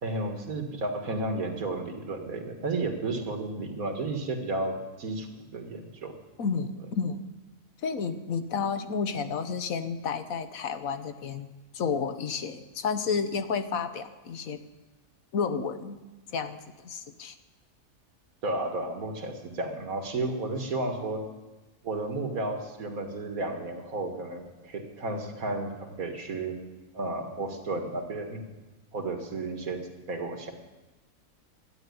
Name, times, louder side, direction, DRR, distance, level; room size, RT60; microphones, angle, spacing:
voice 1, 0.0-5.3 5.5-6.1 18.4-21.3 21.8-26.6 26.9-28.5 28.9-30.5, right 2 dB, 85° right, 4 dB, 2.2 m, -32 dB
voice 2, 6.4-7.2 7.8-14.6 15.3-16.0 16.3-17.3, left 5 dB, 80° left, 10 dB, 1.3 m, -31 dB
12.5 x 9.3 x 9.5 m, 1.1 s
omnidirectional pair, 1.4 m